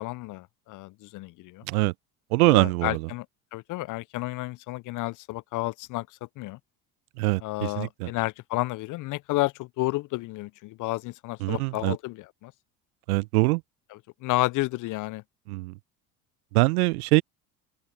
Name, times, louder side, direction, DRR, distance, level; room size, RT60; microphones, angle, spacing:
voice 1, 0.0-1.6 2.5-3.3 3.5-6.1 6.4-6.6 7.4-12.5 14.2-15.2, left 20 dB, 45° left, 0.5 m, -31 dB
voice 2, 2.3-3.1 7.2-8.1 11.4-12.0 13.1-13.6 15.5-15.7 16.5-17.2, right 23 dB, 70° right, 0.8 m, -23 dB
hypercardioid pair, 70°, 45 cm